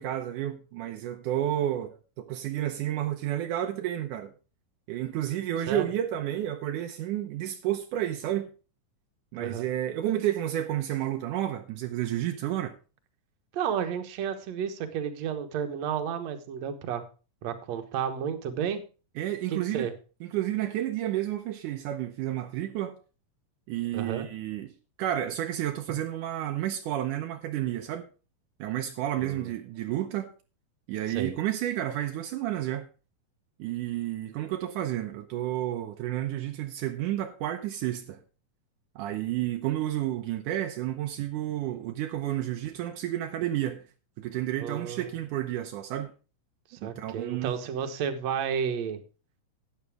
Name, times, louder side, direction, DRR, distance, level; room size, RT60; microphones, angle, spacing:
voice 1, 0.0-4.3 4.9-8.5 9.3-12.8 19.2-19.9 20.2-23.0 23.7-24.7 25.0-28.1 28.6-30.3 30.9-32.9 33.6-38.2 39.0-43.8 44.2-46.1 46.8-47.6, right 12 dB, 80° right, 2.3 m, -31 dB
voice 2, 9.4-9.7 13.5-17.0 17.4-18.8 19.5-19.9 23.9-24.3 29.2-29.5 31.1-31.3 44.6-45.1 46.7-49.0, right 8 dB, 60° right, 2.3 m, -32 dB
13.0 x 9.6 x 3.6 m
omnidirectional pair, 3.8 m